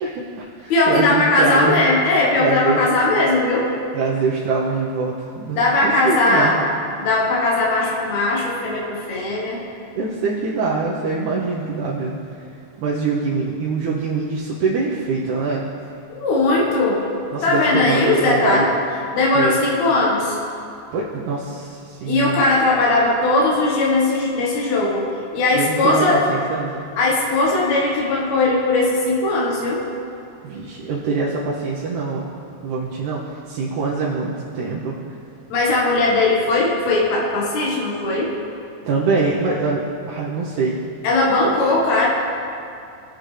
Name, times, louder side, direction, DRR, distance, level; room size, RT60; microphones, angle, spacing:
voice 1, 0.0-1.8 2.4-2.8 3.9-6.5 10.0-12.2 12.8-15.6 17.3-18.7 19.4-19.6 20.9-22.4 25.5-26.7 30.4-32.2 32.6-34.9 38.9-39.8 40.1-40.8, right 4 dB, 75° right, -5 dB, 2.2 m, -23 dB
voice 2, 0.7-3.7 5.6-6.6 7.0-9.6 16.1-17.0 17.4-18.7 19.1-20.4 22.1-25.1 25.3-26.3 27.0-29.8 35.5-38.3 41.0-42.1, left 2 dB, 70° left, -4 dB, 2.7 m, -19 dB
17.5 x 7.7 x 3.3 m, 2.5 s
omnidirectional pair, 3.4 m